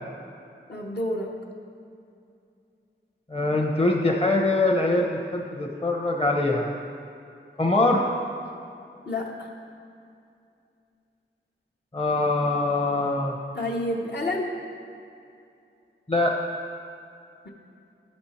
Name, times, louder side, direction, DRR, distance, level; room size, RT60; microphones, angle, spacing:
voice 1, 0.7-1.4 9.1-9.5 13.5-14.6, left 1 dB, 60° left, -2 dB, 1.0 m, -29 dB
voice 2, 3.3-6.7 7.6-8.1 11.9-13.4 16.1-16.4, left 2 dB, 30° left, 0 dB, 0.9 m, -23 dB
11.5 x 4.4 x 4.3 m, 2.5 s
cardioid pair, 45°, 20 cm